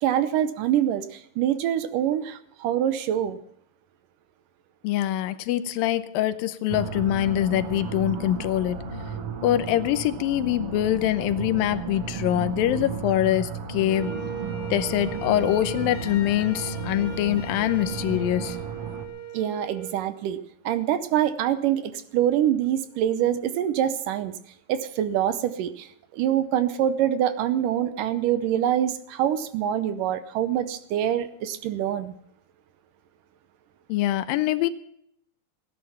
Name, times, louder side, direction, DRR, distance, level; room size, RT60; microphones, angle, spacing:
voice 1, 0.0-3.4 19.3-20.4 20.7-24.4 24.7-32.1, right 10 dB, 75° right, 12 dB, 2.3 m, -25 dB
voice 2, 4.8-8.8 9.4-14.1 14.7-18.6 33.9-34.7, left 13 dB, 85° left, 12 dB, 2.5 m, -24 dB
sound 1, 6.7-19.1, right 5 dB, 50° right, 2.0 m, -34 dB
Wind instrument woodwind instrument, 13.9-20.0, right 4 dB, 50° left, 3.2 m, -38 dB
16.5 x 10.5 x 5.7 m, 0.70 s
omnidirectional pair, 4.1 m